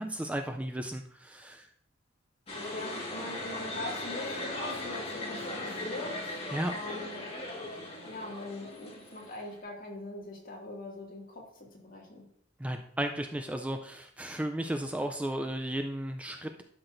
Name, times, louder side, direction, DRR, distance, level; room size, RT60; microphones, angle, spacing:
voice 1, 0.0-1.7 6.5-6.7 12.6-16.6, right 1 dB, 5° right, 5 dB, 0.4 m, -34 dB
sound 1, 2.5-9.6, left 2 dB, 30° left, 1.7 m, -38 dB
voice 2, 2.7-6.2 6.6-7.2 8.0-12.2, left 2 dB, 45° left, -2 dB, 2.2 m, -42 dB
12.0 x 6.0 x 2.6 m, 0.65 s
head